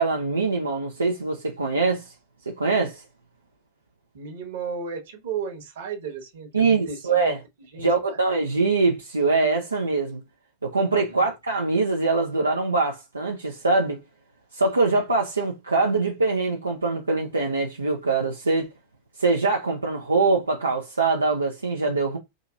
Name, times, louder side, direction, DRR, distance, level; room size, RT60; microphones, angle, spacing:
voice 1, 0.0-2.1 2.5-3.0 6.5-7.4 7.8-10.2 10.6-14.0 14.5-18.7 19.2-22.2, right 3 dB, 80° right, 0.6 m, -23 dB
voice 2, 4.1-7.3 7.7-8.2 11.1-11.3, right 6 dB, 55° right, 1.3 m, -34 dB
4.9 x 2.8 x 2.4 m
figure-of-eight pair, 90°, 0 cm